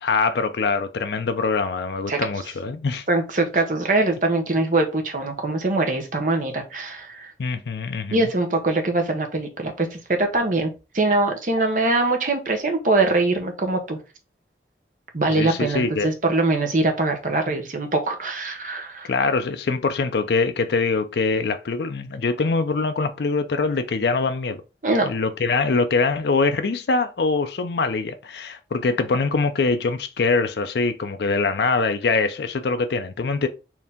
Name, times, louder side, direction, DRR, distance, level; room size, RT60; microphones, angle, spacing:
voice 1, 0.0-3.0 7.4-8.3 15.3-16.1 19.1-24.6 25.0-33.5, left 4 dB, 70° left, 0.4 m, -23 dB
voice 2, 3.1-7.3 8.1-14.0 15.1-19.1 24.8-25.1, right 2 dB, 45° right, 0.9 m, -23 dB
4.4 x 2.7 x 3.5 m
head